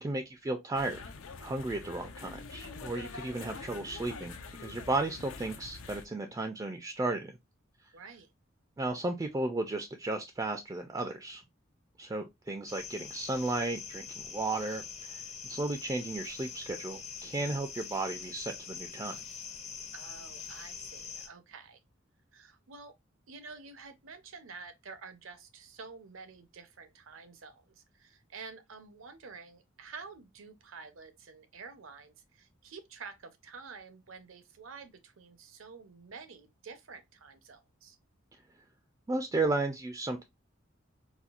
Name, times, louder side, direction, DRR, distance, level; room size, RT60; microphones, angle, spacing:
voice 1, 0.0-1.0 1.4-7.3 8.8-11.4 12.0-19.2 39.1-40.2, right 2 dB, 20° right, 0.3 m, -34 dB
sound 1, 0.7-6.1, left 4 dB, 85° left, 0.5 m, -45 dB
voice 2, 7.9-8.3 19.9-21.8 22.3-22.9 23.3-38.0, right 4 dB, 75° right, 0.7 m, -49 dB
sound 2, 12.7-21.3, left 6 dB, 35° left, 0.5 m, -44 dB
4.2 x 2.3 x 2.4 m
head